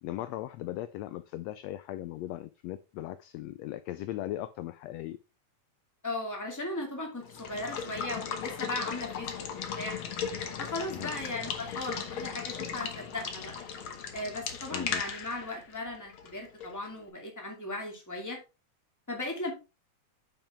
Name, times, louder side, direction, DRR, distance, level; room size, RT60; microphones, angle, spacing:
voice 1, 0.0-5.2 10.9-11.1 14.7-15.0, left 14 dB, 80° left, 12 dB, 1.5 m, -38 dB
voice 2, 6.0-9.4 9.7-10.0 10.6-13.6 14.1-18.4 19.1-19.5, left 2 dB, 5° left, 0 dB, 2.0 m, -37 dB
Water / Water tap faucet / Liquid, 7.2-16.9, left 7 dB, 55° left, 1.6 m, -37 dB
8.9 x 5.6 x 3.6 m, 0.29 s
omnidirectional pair, 3.4 m